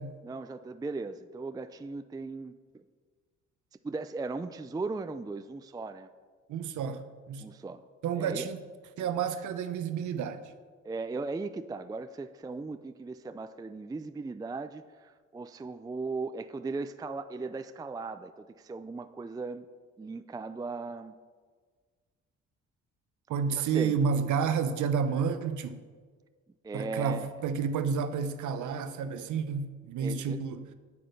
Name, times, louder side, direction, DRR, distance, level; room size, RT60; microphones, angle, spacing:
voice 1, 0.2-2.5 3.8-6.1 7.4-7.9 8.1-8.4 10.8-19.7 20.0-21.1 23.6-23.9 26.6-27.3 30.0-30.4, right 3 dB, 15° right, 10 dB, 0.4 m, -37 dB
voice 2, 6.5-7.5 8.0-8.6 9.0-10.4 23.3-25.8 26.7-30.7, right 6 dB, 75° right, 10 dB, 1.0 m, -30 dB
8.7 x 8.5 x 6.6 m, 1.5 s
cardioid pair, 90°, 30 cm